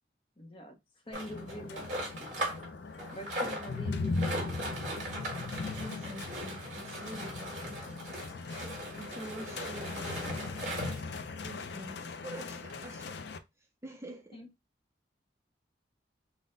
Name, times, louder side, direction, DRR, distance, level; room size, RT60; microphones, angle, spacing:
voice 1, 0.4-0.8 1.1-4.6 14.3-14.5, equal, 30° left, 0.6 m, -46 dB
sound 1, 1.1-13.4, left 3 dB, 70° left, 0.4 m, -39 dB
sound 2, 1.1-2.7 3.0-11.1 11.8-11.9 12.1-12.2 12.7-12.8, right 1 dB, 40° right, 1.7 m, -39 dB
voice 2, 5.8-8.1 9.0-10.1 11.4-13.2 13.8-14.5, right 1 dB, 15° right, 0.4 m, -46 dB
4.1 x 2.0 x 3.6 m
head